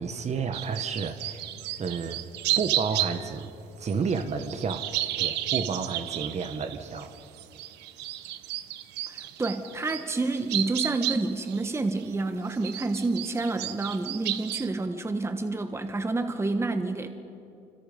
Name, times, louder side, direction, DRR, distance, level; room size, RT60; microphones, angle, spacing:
voice 1, 0.0-1.5 1.8-2.2 2.6-3.5 3.8-4.9 5.2-7.1, right 5 dB, 40° right, 9 dB, 1.6 m, -31 dB
sound 1, 0.5-3.4 3.9-12.2 12.5-14.7, right 13 dB, 85° right, 1.1 m, -32 dB
voice 2, 9.1-17.1, right 3 dB, 15° right, 8 dB, 1.3 m, -29 dB
26.5 x 26.5 x 5.4 m, 2.7 s
cardioid pair, 110°, 17 cm